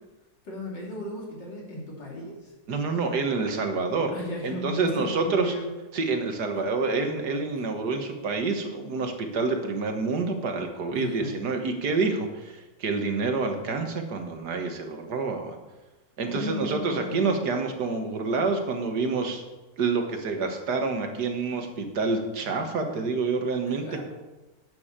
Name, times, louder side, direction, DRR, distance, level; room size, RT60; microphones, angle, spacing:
voice 1, 0.4-2.5 4.1-5.7 10.9-11.4 16.3-17.6 23.7-24.0, left 2 dB, 90° left, -2 dB, 3.7 m, -36 dB
voice 2, 2.7-4.1 4.4-5.5 5.9-15.6 16.2-19.4 19.8-23.9, right 4 dB, 65° right, 4 dB, 2.0 m, -27 dB
10.5 x 8.6 x 6.7 m, 1.1 s
omnidirectional pair, 1.9 m